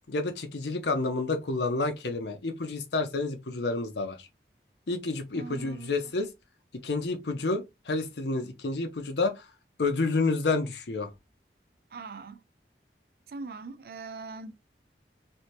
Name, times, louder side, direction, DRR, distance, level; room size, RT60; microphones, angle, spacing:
voice 1, 0.1-4.3 4.9-6.3 6.8-9.5 9.8-11.1, left 3 dB, 80° left, 0.7 m, -29 dB
voice 2, 5.3-5.9 11.9-12.4 13.3-14.5, right 4 dB, 55° right, 0.3 m, -41 dB
3.3 x 2.7 x 2.8 m
head